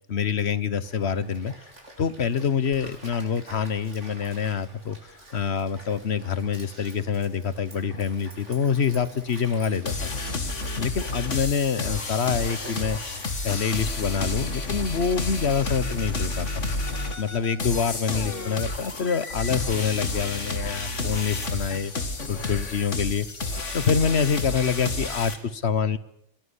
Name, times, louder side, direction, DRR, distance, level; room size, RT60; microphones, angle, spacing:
voice 1, 0.1-1.5 2.0-10.1 10.8-16.5 17.2-21.9 22.3-26.0, left 6 dB, 60° left, 17 dB, 1.3 m, -26 dB
Stream, 0.8-13.9, right 1 dB, 80° right, 5.8 m, -47 dB
sound 1, 9.9-25.3, left 2 dB, 80° left, 2.7 m, -30 dB
23.0 x 18.5 x 9.9 m, 0.75 s
omnidirectional pair, 1.2 m